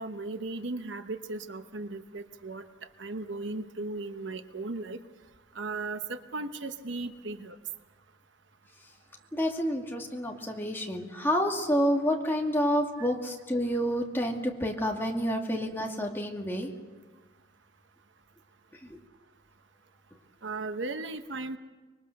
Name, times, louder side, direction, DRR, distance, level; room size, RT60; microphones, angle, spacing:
voice 1, 0.0-2.6 3.0-5.0 5.5-7.6 13.0-13.1 20.4-21.6, right 3 dB, 65° right, 9 dB, 1.0 m, -36 dB
voice 2, 9.3-16.7 18.8-19.0, equal, 10° left, 0 dB, 2.3 m, -29 dB
25.0 x 22.5 x 6.6 m, 1.3 s
head